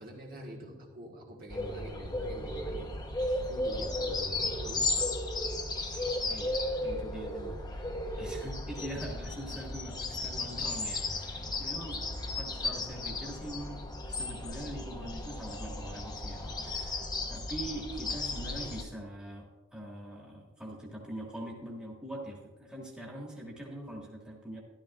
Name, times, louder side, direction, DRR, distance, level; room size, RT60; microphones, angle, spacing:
voice 1, 0.0-5.1, right 1 dB, 40° right, -2 dB, 1.6 m, -45 dB
sound 1, 1.5-18.8, left 2 dB, 15° left, 0.9 m, -35 dB
voice 2, 6.3-12.0 12.4-13.8 14.1-24.6, right 1 dB, 5° right, -2 dB, 1.8 m, -43 dB
13.0 x 12.5 x 2.4 m, 1.3 s
head